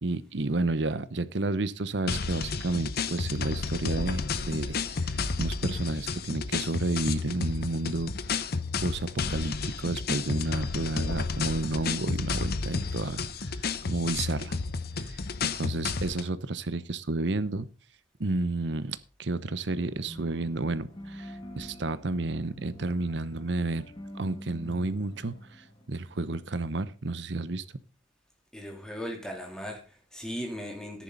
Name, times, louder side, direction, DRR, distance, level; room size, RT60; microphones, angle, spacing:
voice 1, 0.0-8.1 8.8-14.6 15.0-17.7 18.2-23.9 24.1-27.6, right 2 dB, 65° right, 15 dB, 0.9 m, -31 dB
sound 1, 2.1-16.3, left 4 dB, 55° left, 0.7 m, -32 dB
sound 2, 19.8-26.7, equal, 25° left, 2.3 m, -46 dB
voice 2, 28.5-31.0, equal, 5° left, 1 dB, 3.2 m, -38 dB
13.5 x 10.5 x 4.0 m, 0.35 s
head